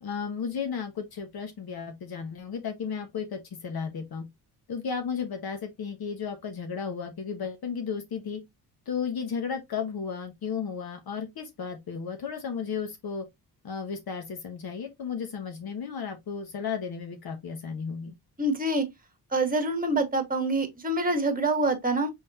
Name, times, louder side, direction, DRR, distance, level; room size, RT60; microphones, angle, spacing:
voice 1, 0.0-4.2 4.7-8.4 8.9-13.2 13.6-18.1, left 6 dB, 65° left, 1.2 m, -34 dB
voice 2, 18.4-18.9 19.3-22.1, right 2 dB, 20° right, 1.6 m, -26 dB
5.4 x 3.4 x 2.8 m
cardioid pair, 90°, 40 cm